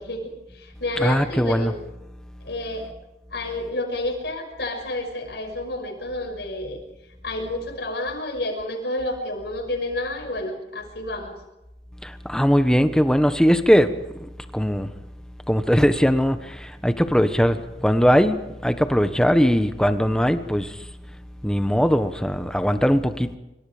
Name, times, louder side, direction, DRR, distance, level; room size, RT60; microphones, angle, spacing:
voice 1, 0.0-1.8 2.4-2.9 3.3-6.8 7.2-11.4, left 1 dB, 65° left, 2 dB, 6.2 m, -30 dB
voice 2, 1.0-1.7 12.0-13.9 14.5-14.9 15.5-20.7 21.4-23.4, equal, 5° left, 9 dB, 1.3 m, -20 dB
26.0 x 25.0 x 5.1 m, 0.97 s
head